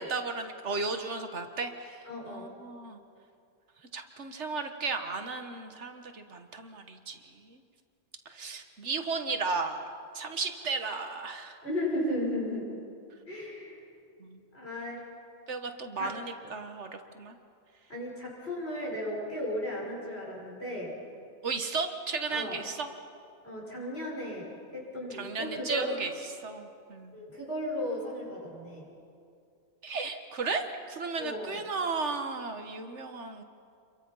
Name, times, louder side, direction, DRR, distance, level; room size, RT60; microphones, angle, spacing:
voice 1, 0.0-3.0 3.9-7.6 8.3-11.6 14.2-14.4 15.5-17.4 21.4-22.9 25.2-26.1 26.4-27.1 29.8-33.4, right 4 dB, 80° right, 6 dB, 1.7 m, -35 dB
voice 2, 2.0-2.5 11.6-12.7 13.3-13.8 14.5-15.0 16.0-16.1 16.4-16.5 17.9-20.9 22.3-22.6 23.4-25.9 27.1-28.9 31.2-31.6, left 1 dB, 60° left, -4 dB, 6.5 m, -35 dB
28.0 x 23.0 x 5.6 m, 2.4 s
omnidirectional pair, 1.2 m